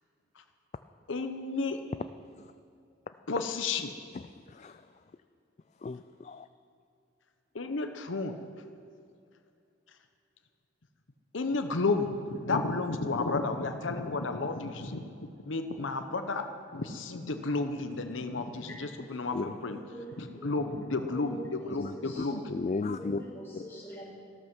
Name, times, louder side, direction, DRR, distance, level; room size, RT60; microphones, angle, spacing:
voice 1, 1.1-1.8 3.3-3.9 7.5-8.3 11.3-15.0 15.4-16.5 16.7-19.8 20.2-22.5 23.0-23.2, left 3 dB, 85° left, 7 dB, 0.8 m, -32 dB
voice 2, 5.8-6.4 19.3-19.5 21.8-23.2, left 3 dB, 35° left, 10 dB, 0.3 m, -35 dB
voice 3, 18.4-22.4 23.0-24.0, equal, 10° left, -5 dB, 4.3 m, -46 dB
14.0 x 13.5 x 6.1 m, 2.5 s
head